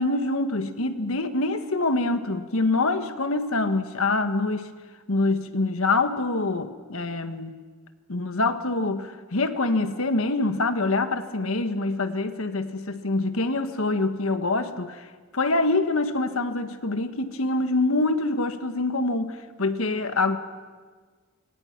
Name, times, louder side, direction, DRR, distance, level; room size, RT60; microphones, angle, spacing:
voice 1, 0.0-4.7 5.1-7.6 8.1-15.0 15.3-20.4, left 2 dB, 80° left, 9 dB, 1.5 m, -25 dB
26.5 x 24.5 x 6.0 m, 1.5 s
head